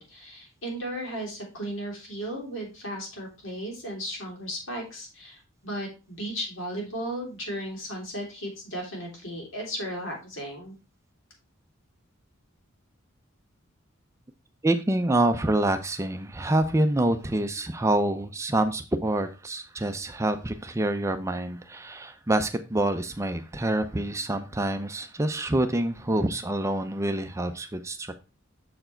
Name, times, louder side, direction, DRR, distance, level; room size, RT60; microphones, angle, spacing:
voice 1, 0.0-10.7, equal, 70° left, 3.0 m, -35 dB
voice 2, 14.6-28.1, right 1 dB, 15° right, 0.5 m, -26 dB
6.8 x 4.5 x 4.4 m
head